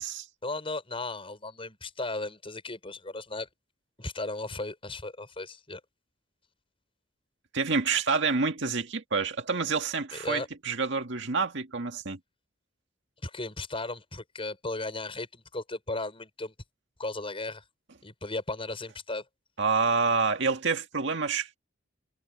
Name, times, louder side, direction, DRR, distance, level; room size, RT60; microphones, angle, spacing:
voice 1, 0.4-3.5 4.0-5.8 10.1-10.5 13.2-16.5 17.0-17.6 18.0-19.2, left 2 dB, 30° left, 6.0 m, -36 dB
voice 2, 7.5-12.2 19.6-21.5, right 4 dB, 65° right, 2.1 m, -28 dB
head